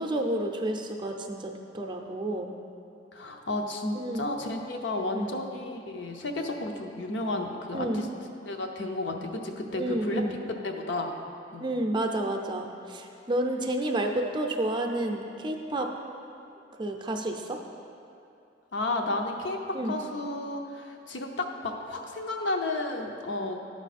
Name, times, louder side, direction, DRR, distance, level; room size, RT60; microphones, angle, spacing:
voice 1, 0.0-2.5 3.9-4.2 5.1-5.3 7.7-8.1 9.8-10.3 11.6-15.9 16.8-17.6 19.7-20.0, right 1 dB, 25° right, 3 dB, 0.5 m, -30 dB
voice 2, 3.1-8.1 8.4-10.4 10.6-11.1 11.5-11.7 18.7-23.6, left 2 dB, 75° left, 3 dB, 0.7 m, -32 dB
12.0 x 4.8 x 4.1 m, 2.6 s
head